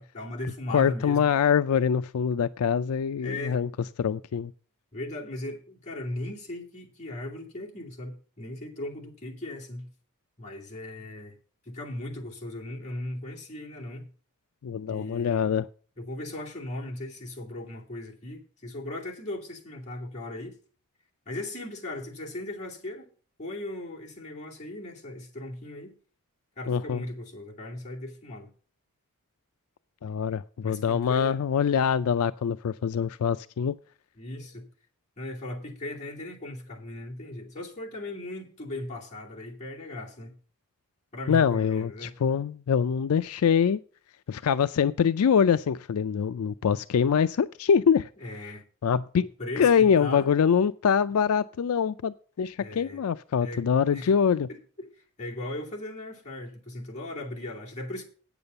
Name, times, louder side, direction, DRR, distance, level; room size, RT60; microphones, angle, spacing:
voice 1, 0.0-1.3 3.2-3.6 4.9-9.9 10.4-11.4 11.7-14.1 14.9-15.5 16.0-20.6 21.3-23.1 23.4-25.9 26.6-28.5 30.6-31.4 34.2-34.6 35.2-40.3 41.1-42.1 48.2-48.6 49.4-50.3 52.6-53.0 53.4-53.7 53.9-54.1 54.5-54.9 55.2-58.0, left 1 dB, 35° left, 2.6 m, -38 dB
voice 2, 0.7-3.7 4.0-4.5 14.6-15.7 26.7-27.0 30.0-33.7 41.3-43.8 44.3-48.1 48.8-49.3 49.6-54.5, left 7 dB, 80° left, 0.4 m, -24 dB
8.8 x 6.9 x 6.7 m
head